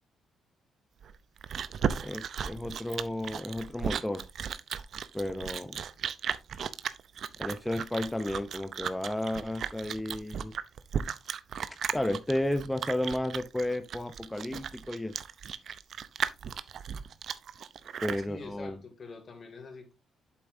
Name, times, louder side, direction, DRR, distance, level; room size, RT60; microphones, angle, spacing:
Chewing mastication, 1.0-18.3, right 7 dB, 60° right, 0.6 m, -35 dB
voice 1, 2.0-4.2 5.1-5.8 7.4-10.5 11.9-15.1 18.0-18.8, left 1 dB, 5° left, 0.7 m, -33 dB
voice 2, 18.3-19.9, left 4 dB, 45° left, 2.5 m, -46 dB
8.4 x 7.0 x 2.7 m
cardioid pair, 90°, 0 cm